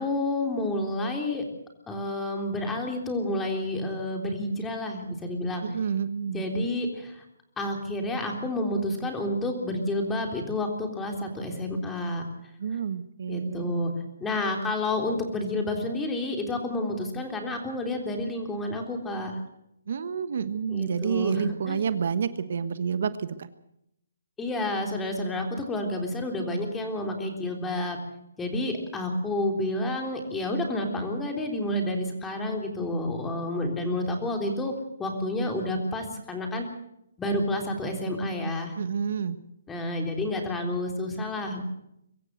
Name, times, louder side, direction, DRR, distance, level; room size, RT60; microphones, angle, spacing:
voice 1, 0.0-1.4 1.9-5.8 6.3-7.2 7.6-12.3 13.3-13.9 14.2-19.3 20.7-21.8 24.4-28.0 28.4-34.7 35.0-36.7 37.2-38.7 39.7-41.6, left 1 dB, 10° left, 3 dB, 3.6 m, -29 dB
voice 2, 5.6-6.4 12.6-13.8 19.9-23.1 23.4-23.5 38.8-39.4, right 7 dB, 60° right, 12 dB, 1.3 m, -29 dB
24.0 x 14.5 x 8.0 m, 0.78 s
hypercardioid pair, 155°, 0 cm